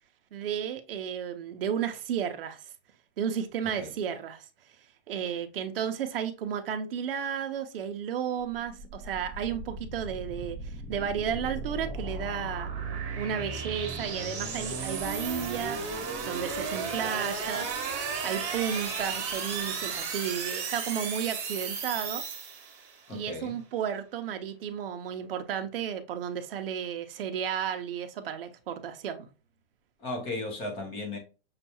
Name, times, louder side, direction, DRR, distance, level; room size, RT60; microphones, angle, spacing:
voice 1, 0.3-2.6 3.2-4.5 5.1-12.7 13.2-15.8 16.3-17.7 18.1-22.2 23.1-29.3, right 8 dB, 55° right, 0.7 m, -33 dB
sound 1, 8.4-23.0, right 5 dB, 15° right, 1.4 m, -35 dB
voice 2, 23.1-23.5 30.0-31.2, left 2 dB, 15° left, 0.7 m, -35 dB
6.6 x 2.3 x 2.9 m
supercardioid pair, 175°, 35 cm